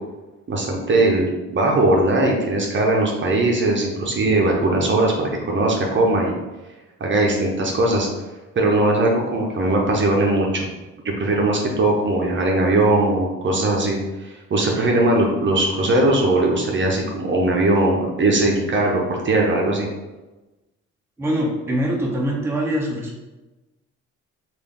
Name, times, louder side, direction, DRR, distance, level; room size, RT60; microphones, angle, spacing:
voice 1, 0.5-6.3 7.0-8.1 8.6-10.7 11.0-19.9, right 2 dB, 40° right, -1 dB, 0.8 m, -19 dB
voice 2, 21.2-23.2, equal, 10° right, -2 dB, 0.7 m, -23 dB
3.3 x 2.5 x 3.6 m, 1.1 s
cardioid pair, 90°, 30 cm